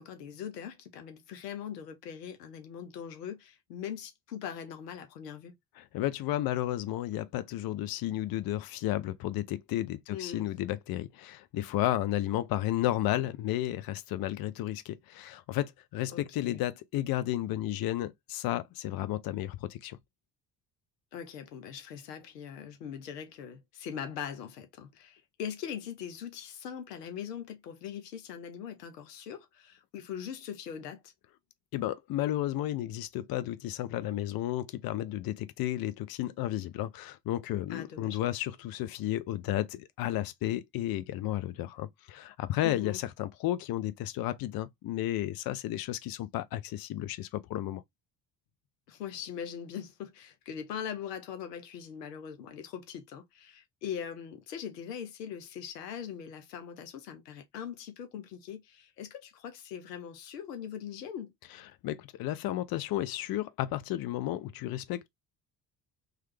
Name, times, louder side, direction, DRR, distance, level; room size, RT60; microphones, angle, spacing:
voice 1, 0.0-5.6 10.1-10.4 16.1-16.6 21.1-31.1 37.7-38.2 42.6-43.0 48.9-61.3, left 8 dB, 90° left, 0.6 m, -41 dB
voice 2, 5.8-20.0 31.7-47.8 61.8-65.1, left 14 dB, 50° left, 0.6 m, -33 dB
3.2 x 2.3 x 3.0 m
hypercardioid pair, 55°, 47 cm